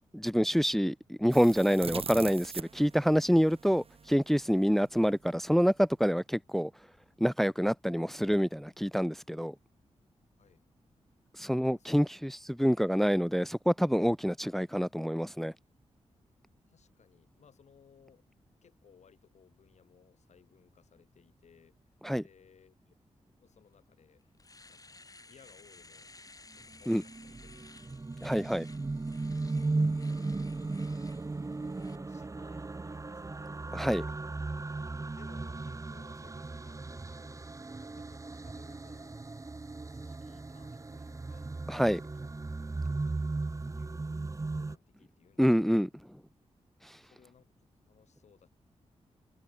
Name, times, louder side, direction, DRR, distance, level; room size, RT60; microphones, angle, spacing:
voice 1, 0.1-6.7 7.2-9.5 11.4-15.5 22.0-22.2 26.9-27.0 28.2-28.7 33.7-34.1 41.7-42.0 45.4-45.9, equal, ahead, 0.4 m, -27 dB
sound 1, 1.3-4.2, right 5 dB, 55° right, 1.9 m, -42 dB
voice 2, 11.7-12.1 16.7-18.2 18.6-21.7 22.1-23.0 23.4-24.3 24.7-26.1 26.6-28.0 29.4-31.1 31.6-33.5 34.9-37.5 37.8-39.1 39.9-41.5 42.0-42.1 43.0-43.4 43.7-45.8 47.0-47.5 47.9-48.5, left 7 dB, 75° left, 5.8 m, -62 dB
Domestic sounds home sounds, 23.7-23.8 24.2-32.0, left 3 dB, 30° left, 5.4 m, -56 dB
sound 2, 26.7-44.8, right 3 dB, 25° right, 1.5 m, -36 dB
cardioid pair, 80°, 12 cm